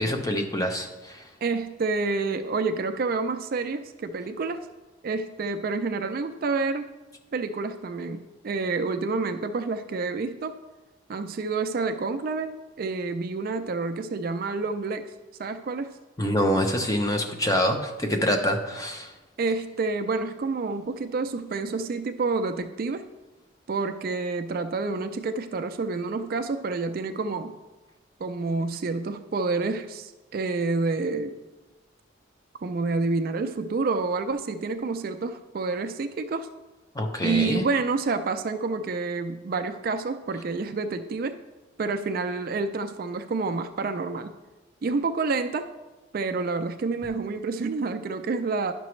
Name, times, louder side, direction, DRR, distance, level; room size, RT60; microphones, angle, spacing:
voice 1, 0.0-1.2 16.2-19.1 37.0-37.6, equal, 15° left, 4 dB, 0.6 m, -25 dB
voice 2, 1.4-4.7 5.0-6.9 7.3-10.6 11.1-15.1 15.4-16.0 19.4-23.0 23.7-27.5 28.2-31.4 32.6-36.5 37.2-41.4 41.8-44.3 44.8-45.7 46.1-48.7, right 3 dB, 45° right, 8 dB, 0.3 m, -28 dB
10.5 x 5.9 x 3.1 m, 1.1 s
head